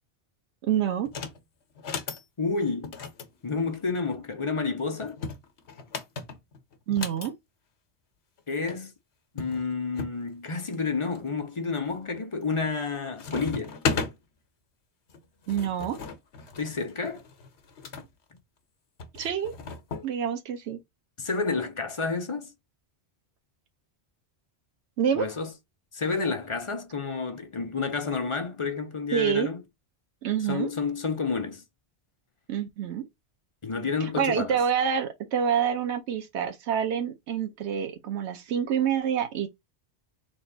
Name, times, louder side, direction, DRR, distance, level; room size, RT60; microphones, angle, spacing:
voice 1, 0.6-1.1 6.9-7.3 15.5-16.0 19.1-19.5 20.0-20.8 25.0-25.3 29.1-29.5 30.2-30.7 32.5-33.1 34.0-39.5, right 8 dB, 90° right, 1.0 m, -27 dB
sound 1, 1.0-1.4 1.7-2.2 2.8-4.2 5.0-7.3 8.4-8.5 8.7-8.8 9.4-10.2 10.7-11.2 11.8-12.2 12.5-12.9 13.2-14.1 15.1-18.1 19.0-20.1, left 5 dB, 75° left, 1.2 m, -35 dB
voice 2, 2.4-2.9 3.4-5.2 8.5-8.9 9.3-13.8 16.6-17.2 21.2-22.5 25.1-25.5 25.9-29.6 30.5-31.6 33.6-34.6, left 4 dB, 35° left, 0.7 m, -30 dB
3.7 x 2.4 x 3.9 m
omnidirectional pair, 1.1 m